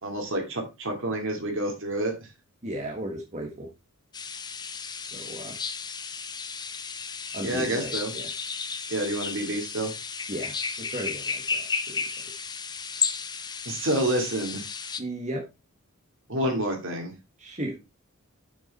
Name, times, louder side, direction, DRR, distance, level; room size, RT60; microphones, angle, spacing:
voice 1, 0.0-2.3 7.4-8.1 8.9-9.9 13.6-14.6 16.3-17.1, right 1 dB, 60° right, 2 dB, 2.7 m, -28 dB
voice 2, 2.6-3.7 5.0-5.6 7.3-8.3 10.3-11.7 15.0-15.4 17.4-17.8, right 1 dB, 35° right, -1 dB, 1.7 m, -35 dB
sound 1, 4.1-15.0, left 5 dB, 20° left, 0.6 m, -33 dB
6.9 x 6.3 x 4.2 m, 0.26 s
head